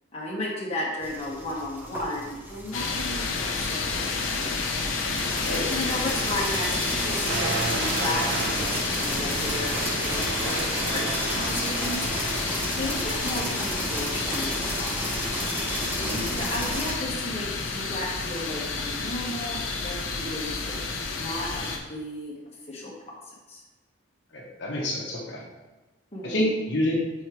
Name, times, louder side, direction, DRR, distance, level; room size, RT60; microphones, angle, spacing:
voice 1, 0.1-4.6 5.7-12.1 12.8-14.9 16.3-20.9 21.1-22.3 22.7-23.1 23.5-23.6 26.1-26.6, left 1 dB, 30° left, -5 dB, 1.3 m, -34 dB
sound 1, 1.0-16.9, right 1 dB, 10° right, 0.6 m, -33 dB
sound 2, 2.7-21.8, left 4 dB, 80° left, 0.7 m, -30 dB
sound 3, 7.3-12.5, right 3 dB, 60° right, 0.6 m, -33 dB
voice 2, 16.0-16.4 24.3-25.4 26.2-26.9, left 1 dB, 60° left, -3 dB, 1.1 m, -28 dB
4.6 x 4.4 x 4.7 m, 1.1 s
head